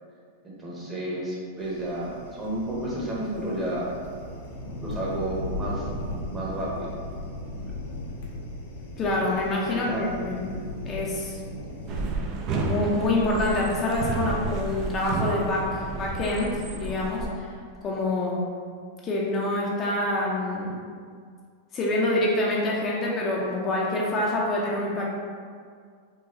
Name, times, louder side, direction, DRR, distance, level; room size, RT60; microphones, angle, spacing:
voice 1, 0.4-3.9 4.8-5.9 6.3-6.9 9.7-10.1, right 1 dB, 20° right, -5 dB, 0.9 m, -31 dB
sound 1, 1.6-12.1, left 1 dB, 75° left, 0.6 m, -37 dB
voice 2, 9.0-11.4 12.6-17.5 17.8-18.4 19.0-20.8 21.7-25.1, left 1 dB, 30° left, -4 dB, 0.5 m, -26 dB
sound 2, 11.9-17.3, right 3 dB, 40° right, 0.4 m, -31 dB
3.8 x 2.3 x 2.7 m, 2.1 s
hypercardioid pair, 110°, 0 cm